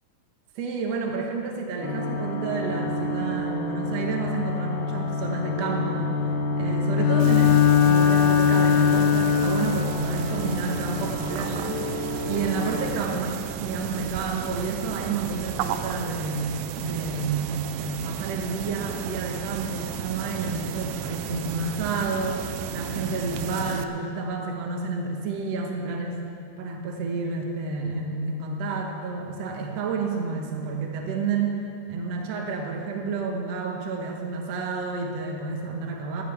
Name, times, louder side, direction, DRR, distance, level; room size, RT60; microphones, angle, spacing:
voice 1, 0.6-6.1 6.6-26.2 26.6-31.6 31.9-36.2, right 4 dB, 60° right, 1 dB, 2.1 m, -30 dB
sound 1, 1.8-13.0, left 4 dB, 65° left, 2.6 m, -26 dB
Bowed string instrument, 7.0-10.1, left 9 dB, 80° left, 1.7 m, -22 dB
sound 2, 7.2-23.8, right 9 dB, 85° right, 2.3 m, -34 dB
19.5 x 14.0 x 3.4 m, 2.4 s
omnidirectional pair, 3.9 m